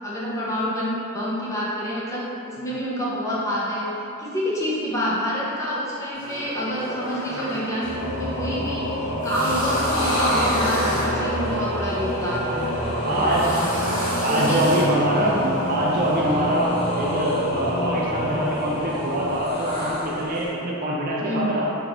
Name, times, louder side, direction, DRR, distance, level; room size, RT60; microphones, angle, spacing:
voice 1, 0.0-3.9 4.2-8.8 9.2-12.6 13.0-13.4 14.2-14.8 15.2-15.6 21.2-21.7, equal, 15° left, -8 dB, 0.5 m, -27 dB
sound 1, 6.1-16.3, equal, 80° right, 1.4 m, -30 dB
Singing / Musical instrument, 7.8-20.4, equal, 75° left, 0.6 m, -28 dB
sound 2, 9.5-20.5, equal, 55° left, 1.0 m, -36 dB
voice 2, 13.0-13.5 13.8-21.7, right 1 dB, 45° right, -4 dB, 0.4 m, -24 dB
3.5 x 2.9 x 2.4 m, 2.9 s
head